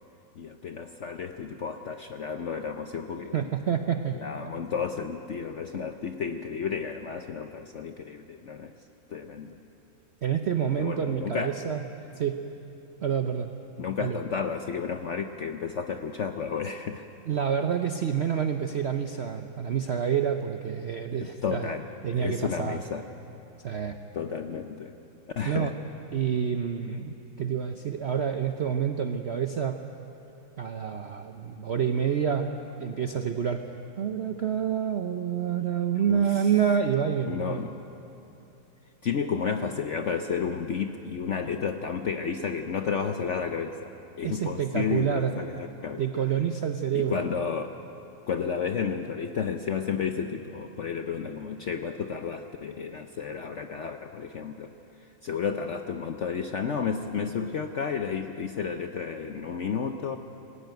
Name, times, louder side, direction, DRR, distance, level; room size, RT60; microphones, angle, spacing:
voice 1, 0.4-3.5 4.1-8.7 9.1-9.6 10.8-11.6 13.8-17.0 21.2-21.9 22.1-23.1 24.1-24.9 25.4-25.7 36.1-36.5 37.2-37.7 39.0-46.2 46.9-47.7 48.3-54.7 55.2-60.2, left 6 dB, 60° left, 6 dB, 0.7 m, -32 dB
voice 2, 3.3-4.2 10.2-11.8 12.2-12.4 13.0-13.5 14.0-14.2 17.3-21.7 22.0-22.8 23.6-24.0 25.4-25.7 26.1-29.9 30.6-32.5 32.8-33.7 34.0-37.6 44.2-45.4 46.0-47.2, right 8 dB, 65° right, 6 dB, 0.6 m, -28 dB
20.0 x 16.5 x 9.2 m, 2.9 s
omnidirectional pair, 2.0 m